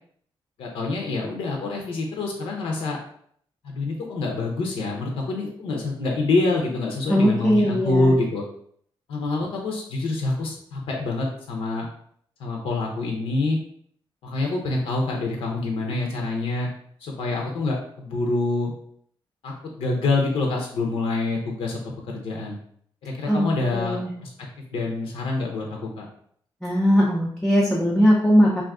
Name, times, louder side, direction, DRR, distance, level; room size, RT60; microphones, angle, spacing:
voice 1, 0.6-3.0 3.6-8.4 9.1-11.9 12.4-13.6 14.2-16.7 17.0-18.7 19.4-21.8 22.1-22.6 23.0-24.3 24.7-26.1, left 3 dB, 85° left, 0 dB, 0.6 m, -26 dB
voice 2, 7.1-8.1 23.3-24.1 26.6-28.6, equal, 5° left, -5 dB, 0.4 m, -20 dB
2.5 x 2.4 x 3.5 m, 0.64 s
wide cardioid pair, 170°, 9 cm